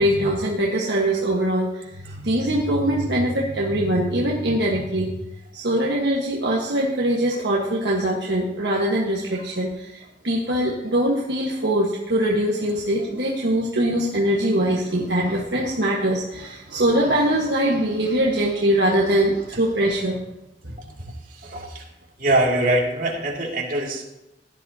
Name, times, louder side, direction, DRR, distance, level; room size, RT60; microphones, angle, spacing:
voice 1, 0.0-5.2 5.5-20.2 20.6-20.7, right 1 dB, 65° right, -3 dB, 1.5 m, -22 dB
voice 2, 20.8-21.9 22.2-24.1, right 1 dB, 50° right, -2 dB, 2.7 m, -24 dB
16.5 x 11.0 x 2.9 m, 0.95 s
head